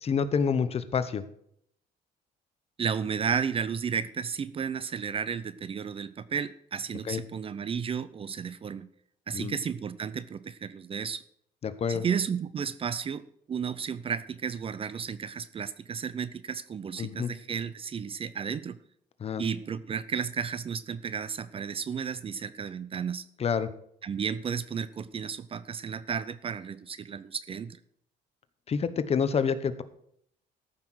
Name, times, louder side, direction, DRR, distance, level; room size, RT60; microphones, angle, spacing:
voice 1, 0.0-1.2 7.0-7.2 9.3-9.5 11.6-12.0 17.0-17.3 19.2-19.4 23.4-23.7 28.7-29.8, left 6 dB, 35° left, 13 dB, 0.9 m, -28 dB
voice 2, 2.8-8.9 9.3-11.2 11.9-13.2 13.5-18.8 19.4-23.2 24.0-27.8, right 7 dB, 35° right, 16 dB, 0.6 m, -33 dB
14.0 x 5.9 x 6.2 m, 0.69 s
cardioid pair, 110°, 17 cm